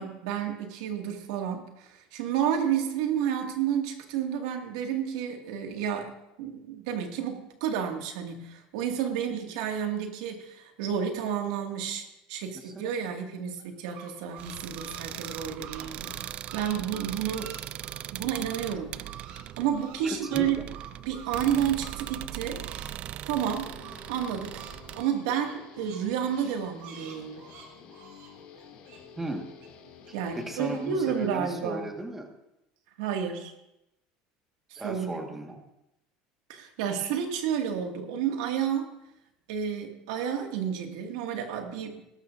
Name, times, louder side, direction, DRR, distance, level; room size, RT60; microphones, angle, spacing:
voice 1, 0.0-6.1 6.4-16.2 16.5-17.5 18.1-19.1 19.6-20.6 21.1-22.6 23.3-23.8 24.1-24.6 24.9-27.4 30.1-31.9 33.0-33.5 34.8-35.2 36.5-38.9 39.5-42.0, right 8 dB, 90° right, 3 dB, 2.0 m, -31 dB
sound 1, 13.6-18.7 19.0-22.9 23.2-29.7 30.0-30.7, right 7 dB, 65° right, 3.0 m, -48 dB
sound 2, 14.4-25.0, right 12 dB, 45° right, 0.3 m, -40 dB
voice 2, 20.0-20.4 29.2-29.5 30.3-32.3 34.7-35.6, right 2 dB, 10° right, 3 dB, 1.5 m, -36 dB
Guitar, 23.6-31.3, left 6 dB, 60° left, 2.3 m, -51 dB
20.0 x 12.5 x 2.6 m, 0.87 s
cardioid pair, 140°, 3 cm